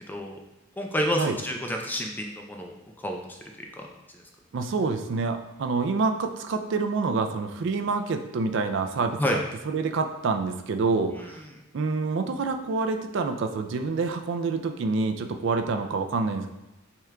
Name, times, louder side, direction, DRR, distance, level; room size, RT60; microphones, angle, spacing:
voice 1, 0.1-0.4 0.8-2.7 3.0-3.4 3.8-3.9 9.2-9.4, equal, 10° left, 2 dB, 0.4 m, -29 dB
voice 2, 4.5-11.4 11.7-16.5, right 4 dB, 60° right, 7 dB, 0.4 m, -27 dB
5.6 x 3.6 x 2.2 m, 0.96 s
head